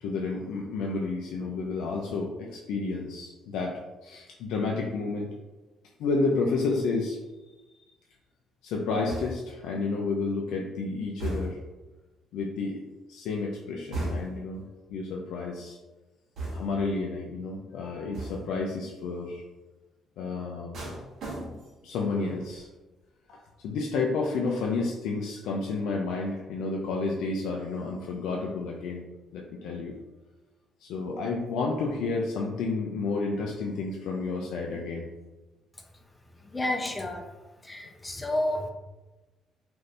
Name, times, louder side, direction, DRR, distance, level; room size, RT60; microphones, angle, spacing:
voice 1, 0.0-5.3 6.0-7.2 8.6-11.6 12.3-12.8 13.1-14.7 14.9-15.8 16.5-19.4 20.2-20.8 21.8-22.7 23.6-29.1 29.3-30.0 30.8-35.1, left 3 dB, 85° left, -1 dB, 0.3 m, -30 dB
sound 1, 9.1-9.6 11.2-11.8 13.9-14.5 16.4-16.9 18.1-18.6 20.7-21.9 22.2-22.6, right 1 dB, 70° right, 0.9 m, -36 dB
voice 2, 36.3-37.2 37.6-38.7, left 1 dB, 20° left, 3 dB, 0.5 m, -30 dB
2.6 x 2.5 x 3.2 m, 1.1 s
cardioid pair, 80°, 0 cm